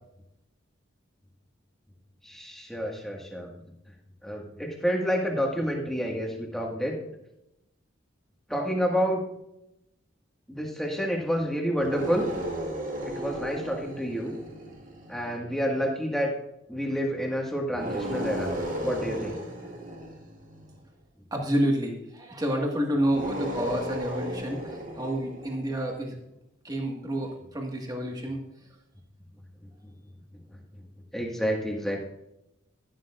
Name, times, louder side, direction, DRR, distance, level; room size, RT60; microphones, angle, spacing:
voice 1, 2.2-3.7 4.2-7.0 8.5-9.2 10.5-12.2 13.1-14.3 15.1-16.3 16.7-18.5 18.8-19.4 31.1-32.0, equal, ahead, -1 dB, 1.8 m, -29 dB
sound 1, 11.8-15.3 17.7-20.8 23.0-25.8, right 1 dB, 40° right, 1.8 m, -35 dB
voice 2, 21.3-26.1 26.6-28.4, equal, 20° right, 1 dB, 1.7 m, -29 dB
12.5 x 11.5 x 2.5 m, 0.85 s
head